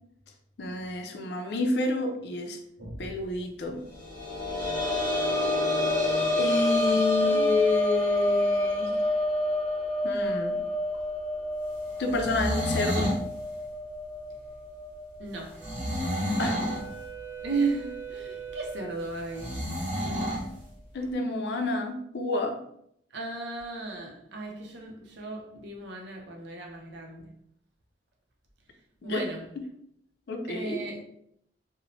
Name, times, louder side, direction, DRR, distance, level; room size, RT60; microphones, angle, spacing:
voice 1, 0.6-2.6 3.0-3.8 6.3-9.0 10.0-10.6 12.0-13.1 16.4-16.6 20.9-22.6 29.0-29.2 30.3-30.8, left 3 dB, 65° left, 0.4 m, -29 dB
voice 2, 2.8-3.1 6.9-7.5 15.2-15.6 17.4-19.5 23.1-27.3 29.0-29.4 30.5-31.0, right 3 dB, 70° right, 0.5 m, -35 dB
sound 1, 4.0-15.4 15.8-15.9 17.4-17.5, left 1 dB, 20° left, 1.0 m, -28 dB
sound 2, 12.0-13.2 15.6-16.9 19.4-20.5, equal, 40° right, 0.8 m, -30 dB
Wind instrument woodwind instrument, 15.6-19.7, right 8 dB, 15° right, 0.5 m, -42 dB
2.9 x 2.0 x 2.7 m
head